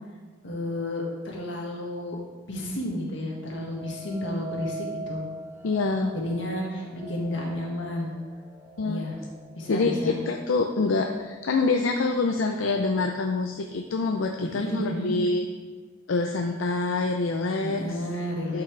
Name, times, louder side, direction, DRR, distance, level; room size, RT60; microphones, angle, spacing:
voice 1, 0.4-2.2 2.5-5.2 6.1-8.1 8.8-9.2 9.6-10.2 14.4-15.2 17.6-18.6, left 1 dB, 65° left, -2 dB, 1.9 m, -31 dB
sound 1, 3.3-12.5 13.0-13.5, right 2 dB, 20° right, 1.1 m, -43 dB
voice 2, 5.6-6.1 8.8-9.1 9.7-15.4 16.1-17.8 18.5-18.6, left 3 dB, 80° left, 4 dB, 0.5 m, -26 dB
11.5 x 5.9 x 3.3 m, 1.4 s
head